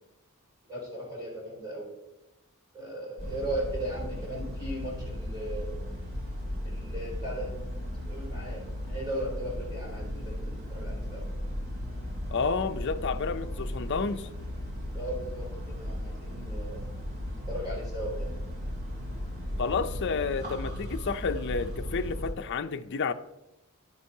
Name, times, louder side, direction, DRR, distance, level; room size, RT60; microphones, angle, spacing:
voice 1, 0.7-1.9 2.7-5.8 6.6-7.5 8.0-11.3 14.9-16.9 17.5-18.1, right 1 dB, 20° right, 3.3 m, -37 dB
sound 1, 3.2-22.3, left 1 dB, 45° right, 2.6 m, -36 dB
voice 2, 12.3-14.3 19.6-23.1, left 4 dB, 55° left, 0.5 m, -30 dB
9.9 x 9.9 x 2.8 m
head